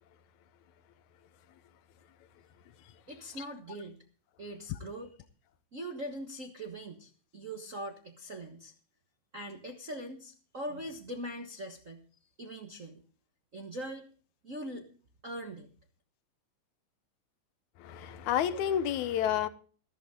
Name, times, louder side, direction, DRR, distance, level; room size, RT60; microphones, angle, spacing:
voice 1, 3.1-4.0 4.4-5.1 5.7-8.7 9.3-12.0 12.4-13.0 13.5-14.1 14.4-14.8 15.2-15.7, right 1 dB, 45° right, 1.1 m, -41 dB
voice 2, 17.8-19.5, left 10 dB, 75° left, 2.2 m, -30 dB
14.5 x 14.0 x 3.7 m
omnidirectional pair, 3.5 m